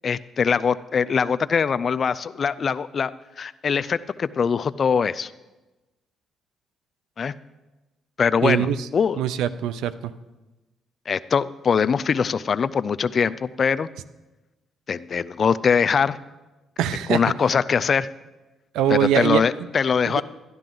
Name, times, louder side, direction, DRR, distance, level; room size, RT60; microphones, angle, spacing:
voice 1, 0.0-3.1 3.4-5.3 7.2-7.3 8.2-8.7 8.9-9.2 11.1-13.9 14.9-16.2 17.1-18.1 18.9-20.2, left 6 dB, 45° left, 15 dB, 0.4 m, -22 dB
voice 2, 8.4-8.8 9.2-10.1 16.8-17.2 18.7-19.4 20.2-20.3, right 10 dB, 90° right, 15 dB, 0.4 m, -22 dB
12.0 x 11.5 x 3.8 m, 1.1 s
cardioid pair, 90°, 0 cm